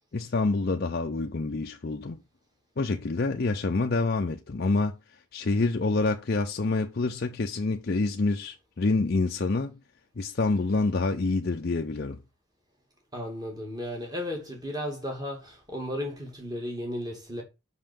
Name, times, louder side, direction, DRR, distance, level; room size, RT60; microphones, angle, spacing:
voice 1, 0.1-2.2 2.8-5.0 5.3-9.8 10.2-12.2, left 3 dB, 45° left, 0.5 m, -27 dB
voice 2, 13.1-17.4, left 1 dB, 20° right, 2.3 m, -34 dB
5.7 x 5.6 x 5.2 m
head